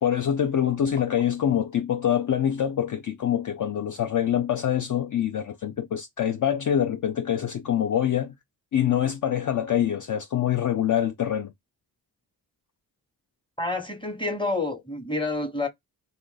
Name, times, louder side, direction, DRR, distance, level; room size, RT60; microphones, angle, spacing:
voice 1, 0.0-8.3 8.7-11.5, left 10 dB, 55° left, 0.5 m, -25 dB
voice 2, 13.6-15.7, left 2 dB, 10° left, 1.1 m, -28 dB
2.6 x 2.5 x 3.8 m
cardioid pair, 50°, 38 cm